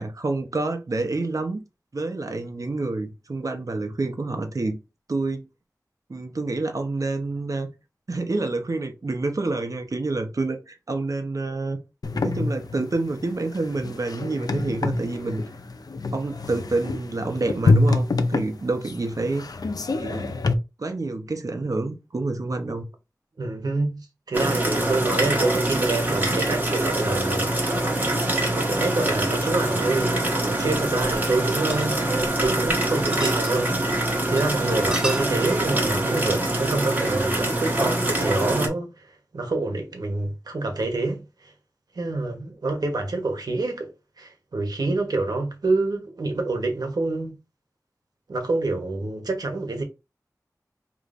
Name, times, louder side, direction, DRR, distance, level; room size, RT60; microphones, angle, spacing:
voice 1, 0.0-1.6 1.9-4.8 5.1-5.5 6.1-7.7 8.1-11.8 12.2-15.4 16.1-19.5 20.0-20.3 20.8-22.8, right 2 dB, 60° right, 0.8 m, -28 dB
sound 1, 12.0-20.5, left 3 dB, 75° left, 0.5 m, -26 dB
voice 2, 23.4-27.8 28.5-33.8 34.3-39.1 39.3-41.5 41.9-43.9 44.2-47.4 48.3-49.8, right 2 dB, 85° right, 1.1 m, -27 dB
sound 2, 24.3-38.7, right 1 dB, 30° right, 1.4 m, -24 dB
sound 3, 31.1-32.7 33.0-33.6 33.9-34.0 34.4-34.5 34.7-35.4, right 1 dB, 15° right, 1.6 m, -34 dB
5.0 x 3.1 x 2.5 m
wide cardioid pair, 65°, 6 cm